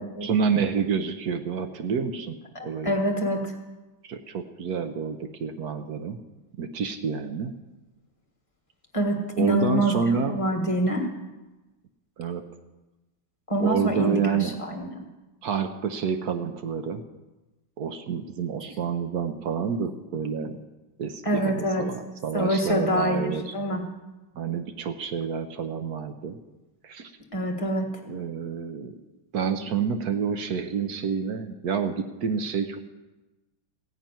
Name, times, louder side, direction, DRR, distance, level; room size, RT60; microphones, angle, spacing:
voice 1, 0.0-2.4 2.6-3.0 4.0-6.2 6.6-7.5 9.4-10.4 12.2-12.5 13.6-14.6 15.4-17.0 17.8-20.6 21.0-23.5 24.4-26.4 26.8-27.1 28.1-28.9 29.3-32.9, right 6 dB, 60° right, 8 dB, 1.0 m, -28 dB
voice 2, 2.5-3.5 8.9-10.0 10.3-11.1 13.5-15.0 21.2-21.8 22.3-23.3 23.5-23.8 27.3-27.9, equal, 20° left, 2 dB, 1.3 m, -25 dB
15.5 x 5.8 x 9.1 m, 1.1 s
omnidirectional pair, 2.3 m